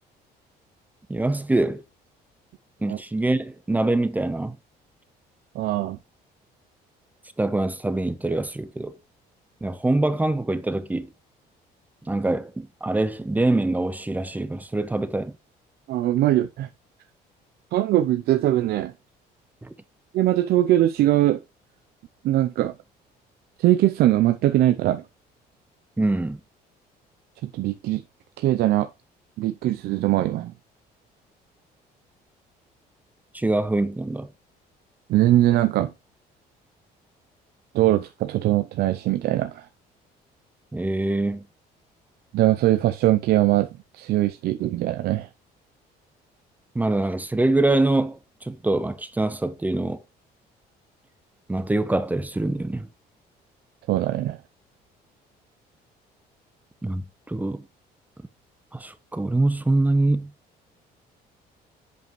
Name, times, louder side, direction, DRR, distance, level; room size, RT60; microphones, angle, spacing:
voice 1, 1.1-1.8 2.8-4.6 7.4-8.9 9.6-11.1 12.0-15.3 19.6-19.7 26.0-26.4 33.3-34.3 40.7-41.4 46.7-50.0 51.5-52.9 56.8-57.6 58.7-60.3, right 2 dB, 10° right, 0.8 m, -24 dB
voice 2, 5.5-6.0 15.9-16.7 17.7-18.9 20.1-21.4 22.2-22.7 23.6-25.0 27.5-28.0 28.4-28.9 29.4-30.5 35.1-35.9 37.7-39.7 42.3-43.7 43.9-45.3 53.9-54.4, right 14 dB, 70° right, 0.5 m, -21 dB
7.9 x 5.1 x 3.1 m
cardioid pair, 110°, 17 cm